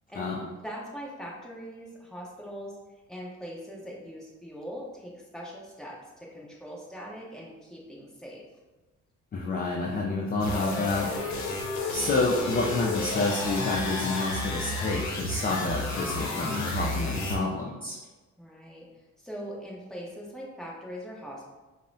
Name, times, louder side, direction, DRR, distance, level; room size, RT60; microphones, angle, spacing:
voice 1, 0.1-2.8 3.1-8.4 18.4-18.9 19.2-21.5, equal, ahead, -4 dB, 0.9 m, -41 dB
voice 2, 9.3-11.1 11.9-18.0, left 3 dB, 30° left, -2 dB, 0.4 m, -28 dB
sound 1, 10.4-17.4, left 2 dB, 65° left, 0.8 m, -31 dB
5.2 x 2.1 x 2.6 m, 1.2 s
cardioid pair, 90°, 30 cm